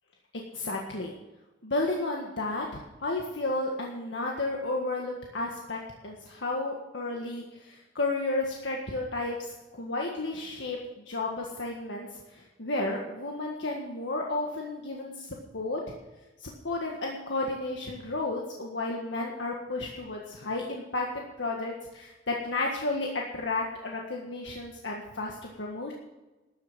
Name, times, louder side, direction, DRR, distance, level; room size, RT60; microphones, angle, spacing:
voice 1, 0.5-1.1 1.6-9.5 9.7-15.8 16.4-25.9, left 2 dB, 85° left, -1 dB, 1.7 m, -32 dB
13.0 x 8.7 x 7.4 m, 1.1 s
head